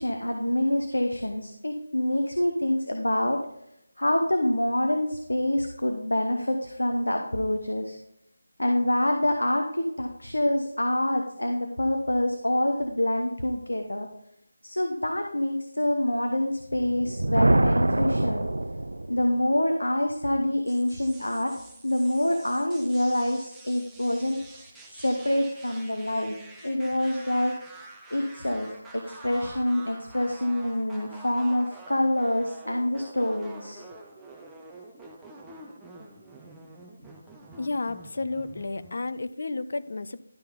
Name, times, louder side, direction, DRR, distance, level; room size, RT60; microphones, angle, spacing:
voice 1, 0.0-3.4 4.0-8.0 8.6-14.1 14.6-18.5 19.1-21.5 21.8-24.7 24.9-26.4 26.6-27.6 28.1-33.8, left 1 dB, 80° left, 4 dB, 1.0 m, -26 dB
Thunder, 16.8-19.4, right 1 dB, 75° right, 0.4 m, -24 dB
sound 1, 20.6-39.1, right 2 dB, 5° right, 0.8 m, -47 dB
voice 2, 37.6-40.2, left 3 dB, 55° left, 13 dB, 0.5 m, -32 dB
11.5 x 5.6 x 3.7 m, 0.82 s
figure-of-eight pair, 160°, 0 cm